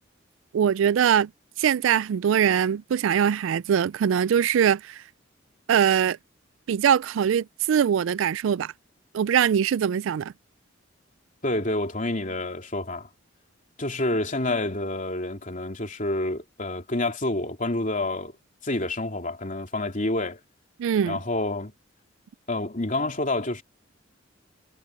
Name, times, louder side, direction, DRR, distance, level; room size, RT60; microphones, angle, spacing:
voice 1, 0.5-1.3 1.6-5.0 5.7-6.2 6.7-8.7 9.1-10.3 20.8-21.2, right 8 dB, 75° right, 0.3 m, -22 dB
voice 2, 11.4-13.1 13.8-18.3 18.6-20.4 21.0-21.7 22.5-23.6, left 2 dB, 40° left, 3.1 m, -28 dB
head